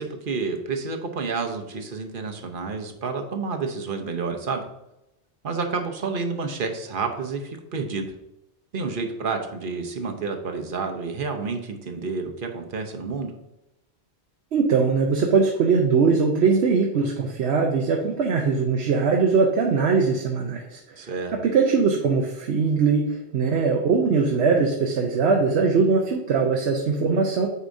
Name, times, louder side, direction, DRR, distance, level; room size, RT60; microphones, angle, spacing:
voice 1, 0.0-4.6 5.4-8.1 8.7-13.3 21.0-21.3, right 4 dB, 55° right, 4 dB, 1.0 m, -29 dB
voice 2, 14.5-20.8 21.3-27.5, right 5 dB, 80° right, 1 dB, 1.0 m, -21 dB
8.2 x 4.8 x 2.6 m, 0.89 s
omnidirectional pair, 1.1 m